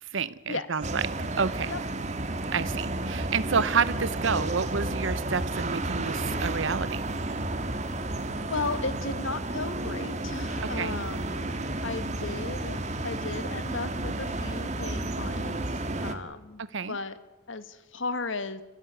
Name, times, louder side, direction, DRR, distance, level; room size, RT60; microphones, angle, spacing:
voice 1, 0.0-1.0 1.4-1.7 2.5-7.0 10.7-11.0 16.6-17.0, right 5 dB, 65° right, 17 dB, 0.8 m, -29 dB
sound 1, 0.8-16.1, right 2 dB, 35° right, 1.9 m, -32 dB
voice 2, 8.5-17.2 17.5-18.6, left 3 dB, 65° left, 12 dB, 1.7 m, -35 dB
29.0 x 15.0 x 9.4 m, 1.1 s
head